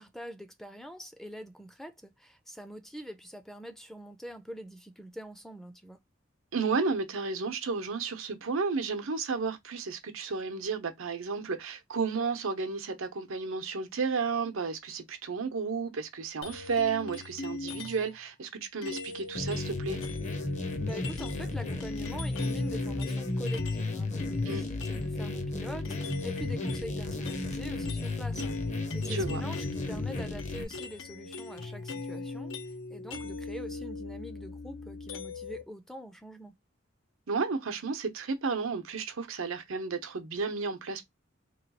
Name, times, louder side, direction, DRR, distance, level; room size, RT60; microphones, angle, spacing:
voice 1, 0.0-6.0 20.6-32.5 32.9-36.5, equal, ahead, 0.4 m, -44 dB
voice 2, 6.5-20.0 24.5-24.6 29.0-29.4 37.3-41.1, right 4 dB, 90° right, 0.8 m, -32 dB
sound 1, 16.4-18.2 18.8-23.9 24.2-35.6, left 3 dB, 85° left, 0.7 m, -40 dB
sound 2, 19.3-30.6, left 2 dB, 35° left, 0.7 m, -34 dB
3.1 x 2.3 x 4.0 m
head